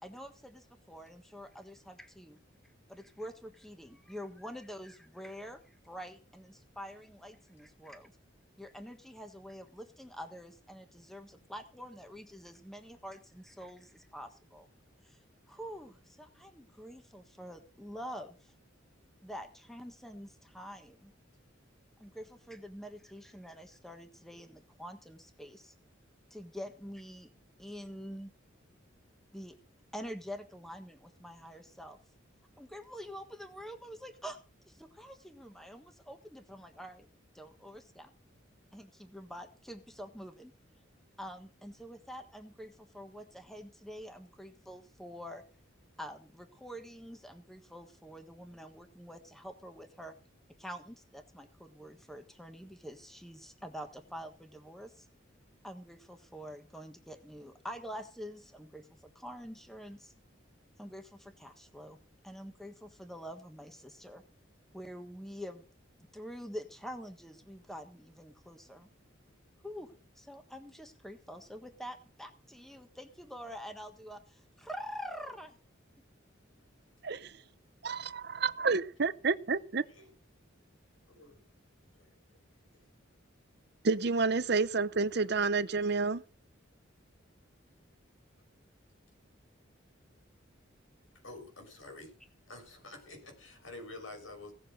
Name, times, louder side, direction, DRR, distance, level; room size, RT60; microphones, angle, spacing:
voice 1, 0.0-2.4 2.9-8.1 8.6-14.7 15.0-18.5 19.2-21.1 22.0-25.7 26.3-27.3 27.6-28.3 29.3-29.6 29.9-32.0 32.6-34.4 34.7-37.1 37.3-38.1 38.7-40.5 41.2-45.4 46.0-50.1 50.6-55.1 55.6-60.1 60.8-62.0 62.2-64.2 64.7-65.6 66.1-68.9 69.6-75.6, equal, ahead, 1.4 m, -46 dB
voice 2, 77.8-79.9 83.8-86.2, right 4 dB, 55° right, 0.8 m, -29 dB
voice 3, 81.1-81.4 81.9-82.1 82.7-82.9 91.2-92.1 92.5-94.5, left 2 dB, 80° left, 6.3 m, -49 dB
17.0 x 7.7 x 6.5 m
head